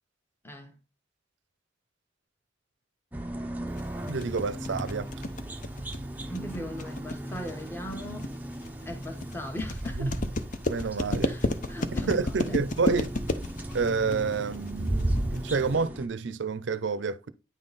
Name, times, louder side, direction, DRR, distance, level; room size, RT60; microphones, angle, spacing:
sound 1, 3.1-16.1, right 1 dB, 10° right, 0.5 m, -36 dB
sound 2, 3.8-15.7, left 2 dB, 45° left, 0.6 m, -32 dB
voice 1, 4.1-5.1 9.9-10.1 10.7-11.3 12.1-13.1 13.7-17.3, right 4 dB, 75° right, 0.5 m, -29 dB
voice 2, 6.3-8.4 8.9-10.2 11.2-12.6, equal, 10° left, 0.9 m, -39 dB
9.3 x 3.7 x 4.0 m
head